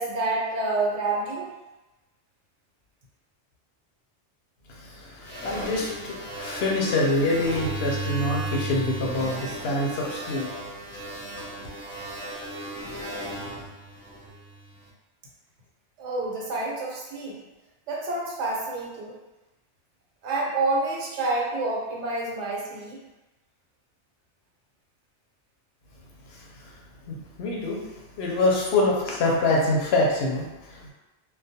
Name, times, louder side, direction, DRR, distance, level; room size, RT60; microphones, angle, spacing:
voice 1, 0.0-1.5 16.0-17.4 17.9-19.1 20.2-23.0, right 2 dB, 80° right, -3 dB, 1.0 m, -28 dB
voice 2, 4.7-10.5 11.4-11.5 26.3-26.7 27.1-27.8 28.2-30.9, left 2 dB, 70° left, -2 dB, 0.8 m, -26 dB
sound 1, 5.2-14.7, right 1 dB, 10° left, 0.6 m, -35 dB
2.3 x 2.2 x 2.7 m, 1.0 s
omnidirectional pair, 1.2 m